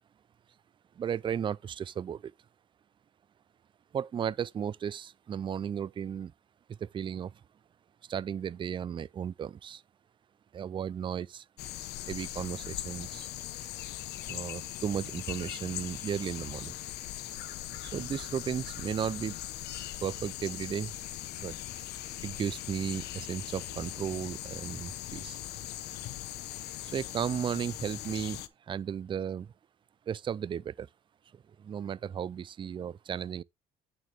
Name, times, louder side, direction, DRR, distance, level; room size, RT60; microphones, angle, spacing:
voice 1, 1.0-2.3 3.9-6.3 6.7-7.3 8.1-9.8 10.5-11.4 12.0-13.3 14.3-16.7 17.8-19.4 20.0-20.9 21.4-21.6 22.2-25.4 26.8-29.5 30.1-30.9 31.3-33.4, right 8 dB, 30° right, 0.4 m, -35 dB
sound 1, 11.6-28.5, left 13 dB, 75° left, 0.9 m, -40 dB
9.1 x 6.6 x 3.4 m
cardioid pair, 110°, 17 cm